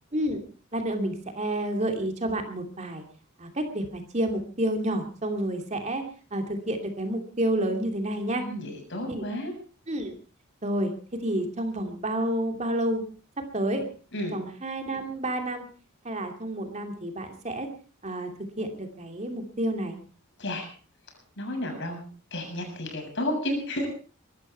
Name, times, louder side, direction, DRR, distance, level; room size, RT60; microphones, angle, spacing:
voice 1, 0.1-0.4 0.7-3.0 3.4-6.0 6.3-8.4 9.1-9.2 9.9-10.1 10.6-10.9 11.2-13.0 13.5-13.8 14.3-15.6 16.0-17.7 18.0-18.3 18.6-20.0, right 1 dB, 35° right, 5 dB, 2.8 m, -29 dB
voice 2, 8.4-9.5 14.1-14.4 20.4-20.7 21.4-23.9, left 1 dB, 60° left, 3 dB, 7.2 m, -32 dB
22.5 x 13.0 x 4.6 m, 0.40 s
head